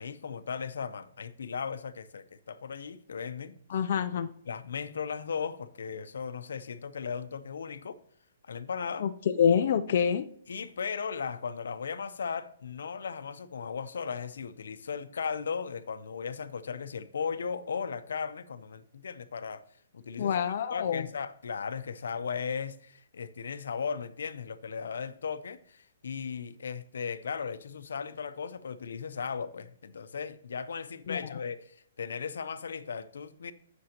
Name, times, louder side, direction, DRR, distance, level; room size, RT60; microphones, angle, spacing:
voice 1, 0.0-3.5 4.5-8.0 8.4-9.1 10.5-19.6 19.9-20.3 20.7-33.5, left 6 dB, 80° left, 0.7 m, -36 dB
voice 2, 3.7-4.3 9.0-10.3 20.2-21.1 31.1-31.4, left 8 dB, 40° left, 0.4 m, -27 dB
15.5 x 6.1 x 2.9 m
hypercardioid pair, 180°, 0 cm